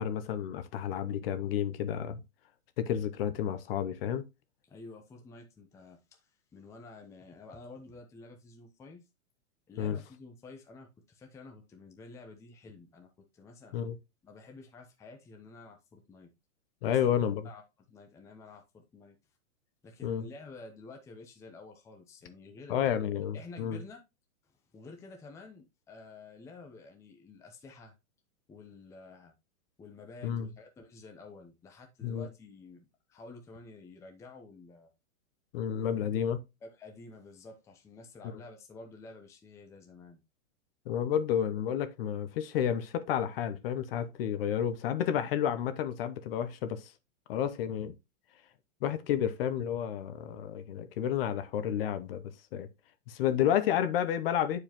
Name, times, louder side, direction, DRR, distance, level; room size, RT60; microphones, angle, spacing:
voice 1, 0.0-2.2 2.8-4.2 9.8-10.0 13.7-14.0 16.8-17.5 20.0-20.3 22.7-23.8 30.2-30.5 32.0-32.3 35.5-36.4 38.2-38.4 40.9-46.9 47.3-48.0 48.8-52.7 53.1-54.6, left 9 dB, 45° left, 0.8 m, -31 dB
voice 2, 4.7-6.2 6.5-9.0 9.7-13.8 14.2-16.3 16.8-17.2 17.4-17.6 17.9-19.2 19.8-22.7 23.3-24.0 24.7-28.0 28.5-29.3 29.8-34.9 36.6-40.2, left 3 dB, 5° left, 0.6 m, -50 dB
8.6 x 4.8 x 2.9 m
hypercardioid pair, 150°, 41 cm